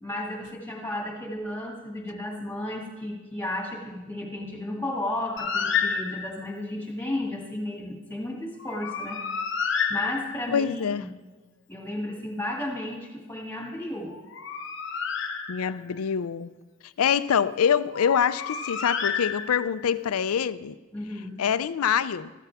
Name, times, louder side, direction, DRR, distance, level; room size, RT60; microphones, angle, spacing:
voice 1, 0.0-9.2 9.9-11.1 11.7-14.1 20.9-21.4, left 1 dB, 10° left, 2.1 m, -33 dB
Bird, 5.4-6.5 8.6-10.7 14.1-16.0 17.9-19.9, left 6 dB, 55° left, 1.0 m, -30 dB
voice 2, 10.5-11.1 15.5-16.5 16.8-20.8 21.4-22.3, left 7 dB, 90° left, 0.4 m, -25 dB
14.0 x 13.5 x 3.5 m
head